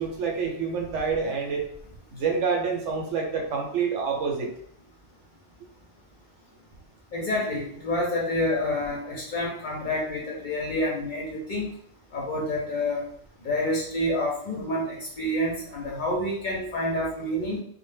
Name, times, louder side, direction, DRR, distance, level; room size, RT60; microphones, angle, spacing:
voice 1, 0.0-1.7 2.1-4.5, right 5 dB, 80° right, 2 dB, 0.9 m, -27 dB
voice 2, 7.1-11.7 12.1-13.0 13.4-17.6, left 1 dB, 55° left, -3 dB, 0.6 m, -28 dB
2.1 x 2.0 x 3.2 m, 0.64 s
omnidirectional pair, 1.2 m